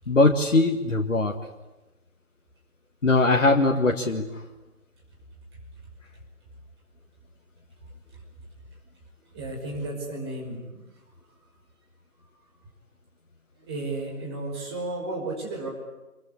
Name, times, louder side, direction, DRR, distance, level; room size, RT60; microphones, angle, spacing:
voice 1, 0.1-1.3 3.0-4.3, left 2 dB, 55° left, 3 dB, 1.9 m, -21 dB
voice 2, 9.3-10.8 13.6-15.7, right 2 dB, 15° right, -2 dB, 5.8 m, -33 dB
25.5 x 23.5 x 9.9 m, 1.1 s
figure-of-eight pair, 155°, 45 cm